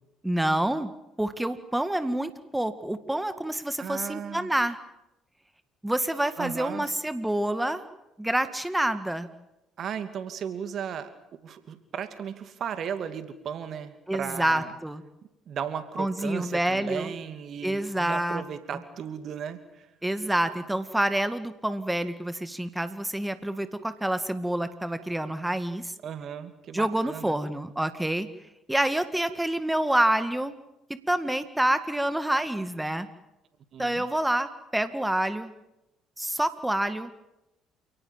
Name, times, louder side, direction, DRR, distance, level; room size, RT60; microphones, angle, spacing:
voice 1, 0.2-0.9 1.2-4.8 5.8-7.8 8.2-9.3 14.1-15.0 16.0-17.1 17.6-18.4 20.0-25.9 26.7-28.3 28.7-30.6 30.9-33.1 33.8-35.5 36.2-37.1, right 1 dB, 10° right, 11 dB, 2.0 m, -27 dB
voice 2, 3.8-4.5 6.4-6.9 9.8-11.1 11.4-14.7 15.5-19.9 26.0-27.4 33.7-34.1, right 8 dB, 55° right, 10 dB, 2.7 m, -36 dB
29.0 x 18.5 x 9.0 m, 0.90 s
hypercardioid pair, 55°, 0 cm